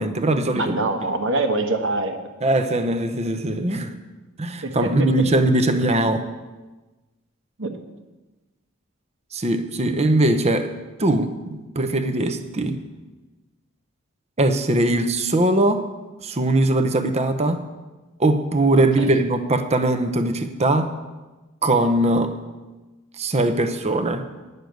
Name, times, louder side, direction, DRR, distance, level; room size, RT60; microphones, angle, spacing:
voice 1, 0.0-0.9 2.4-3.9 4.4-6.2 9.3-10.7 11.0-12.8 14.4-15.8 16.2-17.6 18.2-20.9 21.6-22.3 23.2-24.2, right 1 dB, 30° right, 8 dB, 0.8 m, -21 dB
voice 2, 0.5-2.2 4.6-4.9 7.6-7.7 9.9-10.1 19.0-19.1, right 2 dB, 60° right, 5 dB, 1.2 m, -24 dB
10.5 x 6.7 x 7.9 m, 1.2 s
head